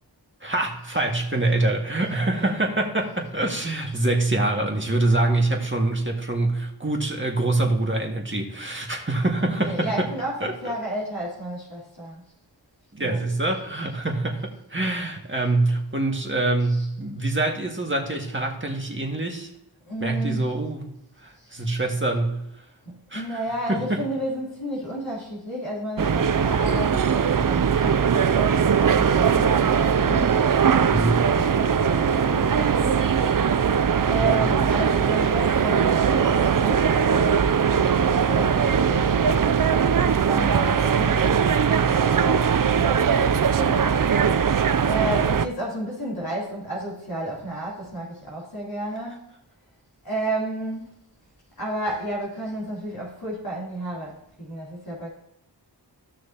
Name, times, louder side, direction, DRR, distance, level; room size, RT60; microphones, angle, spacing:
voice 1, 0.4-10.1 10.4-10.7 12.9-19.5 20.0-20.9 21.2-22.4 23.1-23.4 23.7-24.0 30.9-31.3 34.1-34.4, right 2 dB, 25° right, 0 dB, 1.9 m, -25 dB
voice 2, 2.1-2.5 3.9-4.0 9.4-12.2 13.0-13.2 16.6-16.9 19.8-20.5 21.4-21.9 22.8-30.9 31.2-33.1 34.0-39.1 39.9-43.9 44.8-49.3 50.0-50.9 51.6-55.1, right 1 dB, 55° left, -7 dB, 3.1 m, -32 dB
sound 1, 26.0-45.5, right 7 dB, 50° right, 0.5 m, -20 dB
14.5 x 6.3 x 2.9 m, 0.81 s
wide cardioid pair, 40°, 42 cm